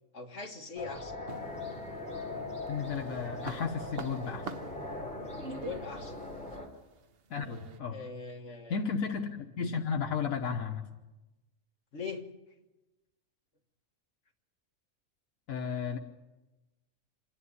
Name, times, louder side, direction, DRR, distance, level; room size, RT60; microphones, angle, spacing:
voice 1, 0.1-1.2 5.5-6.1 7.9-8.8 11.9-12.2, left 5 dB, 55° left, 3 dB, 1.9 m, -41 dB
sound 1, 0.8-6.7, left 2 dB, 5° left, 3.3 m, -40 dB
sound 2, 1.3-2.3 2.7-7.8, right 4 dB, 50° right, 1.0 m, -45 dB
voice 2, 2.7-4.5 7.3-8.0 8.7-10.8 15.5-16.0, left 6 dB, 80° left, 3 dB, 1.5 m, -33 dB
26.5 x 11.0 x 9.8 m, 1.1 s
omnidirectional pair, 1.4 m